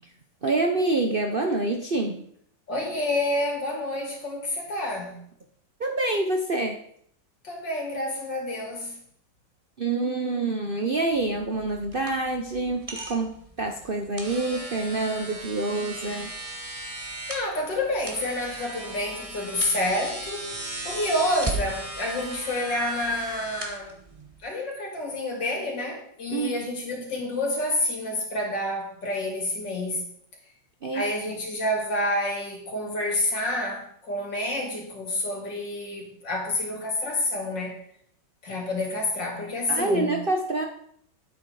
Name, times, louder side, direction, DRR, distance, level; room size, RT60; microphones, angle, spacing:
voice 1, 0.4-2.2 5.8-6.8 9.8-16.3 26.3-26.5 30.8-31.0 39.7-40.6, right 2 dB, 45° right, 3 dB, 0.7 m, -26 dB
voice 2, 2.7-5.2 7.4-9.0 17.3-20.5 20.8-23.9 24.4-30.0 30.9-37.7 38.4-40.2, left 1 dB, 80° left, 0 dB, 3.4 m, -28 dB
sound 1, 11.1-24.4, right 2 dB, 20° right, 1.5 m, -37 dB
9.3 x 8.3 x 4.8 m, 0.65 s
omnidirectional pair, 1.9 m